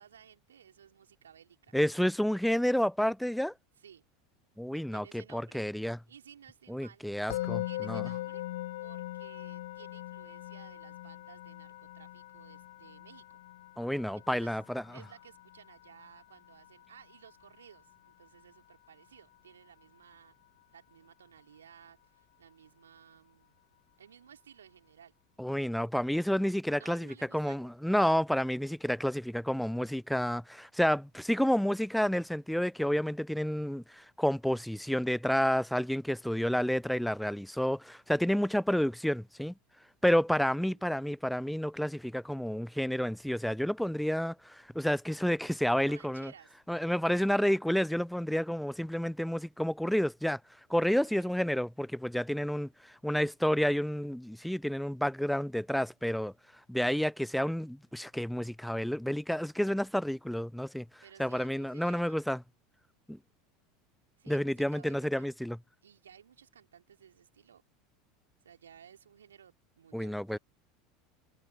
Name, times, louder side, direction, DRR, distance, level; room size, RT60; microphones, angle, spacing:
voice 1, 0.0-1.7 3.8-4.0 4.7-5.6 6.1-7.0 7.7-8.4 8.8-13.4 13.8-14.6 14.9-20.3 20.7-23.5 24.0-25.1 26.8-27.6 40.5-40.8 45.7-46.6 50.8-51.5 61.0-62.2 64.2-65.3 65.8-67.6 68.4-70.4, right 8 dB, 75° right, 3.1 m, -56 dB
voice 2, 1.7-3.5 4.6-6.0 6.7-8.0 13.8-14.8 25.4-39.5 40.0-46.3 46.7-50.4 50.7-56.3 56.7-60.8 61.2-62.4 63.1-63.2 64.3-65.6 69.9-70.4, equal, ahead, 0.4 m, -30 dB
Musical instrument, 7.3-18.4, left 16 dB, 65° left, 0.9 m, -41 dB
figure-of-eight pair, 75°, 0 cm